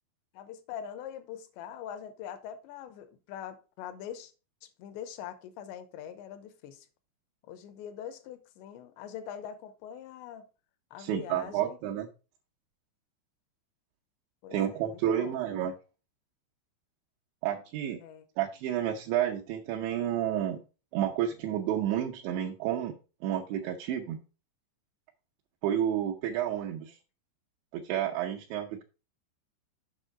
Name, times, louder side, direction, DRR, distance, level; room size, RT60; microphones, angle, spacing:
voice 1, 0.3-4.3 4.6-6.9 7.5-10.5 10.9-11.8 14.4-15.4 18.0-18.3, left 9 dB, 85° left, 3.0 m, -43 dB
voice 2, 11.0-12.1 14.5-15.7 17.4-18.0 18.4-20.6 20.9-22.9 23.2-24.2 25.6-27.0 27.7-28.8, right 10 dB, 80° right, 3.1 m, -30 dB
8.3 x 5.4 x 4.8 m
omnidirectional pair, 5.3 m